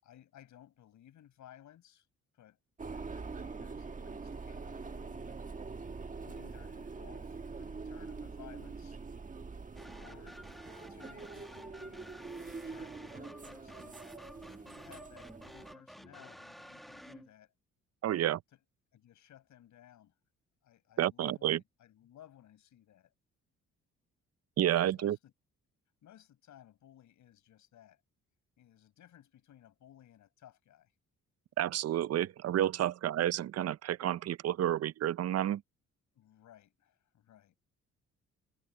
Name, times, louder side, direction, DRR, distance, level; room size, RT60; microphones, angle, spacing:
voice 1, 0.0-2.1 2.3-2.6 2.9-5.9 6.2-9.0 10.0-10.4 10.9-12.2 12.6-17.5 18.5-18.6 18.9-20.1 20.6-23.1 24.7-25.3 26.0-28.0 28.6-30.9 32.8-32.9 36.1-37.5, left 11 dB, 75° left, 6.7 m, -59 dB
sound 1, 2.8-15.7, right 4 dB, 25° right, 1.4 m, -44 dB
sound 2, 9.7-17.3, equal, ahead, 1.1 m, -52 dB
voice 2, 18.0-18.4 21.0-21.6 24.6-25.2 31.6-35.6, right 12 dB, 55° right, 0.6 m, -30 dB
cardioid pair, 90°, 30 cm